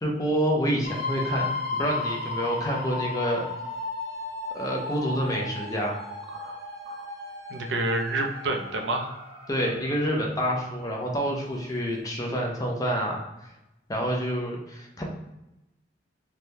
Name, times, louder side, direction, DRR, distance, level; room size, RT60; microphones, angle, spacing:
voice 1, 0.0-3.4 4.5-6.0 9.5-13.2 13.9-15.1, equal, 20° left, -1 dB, 0.5 m, -28 dB
sound 1, 0.8-10.8 11.6-11.7 12.0-12.1, left 3 dB, 30° right, 0.6 m, -35 dB
voice 2, 7.5-9.1, right 2 dB, 75° right, 3 dB, 0.4 m, -29 dB
3.1 x 2.2 x 2.6 m, 0.94 s
head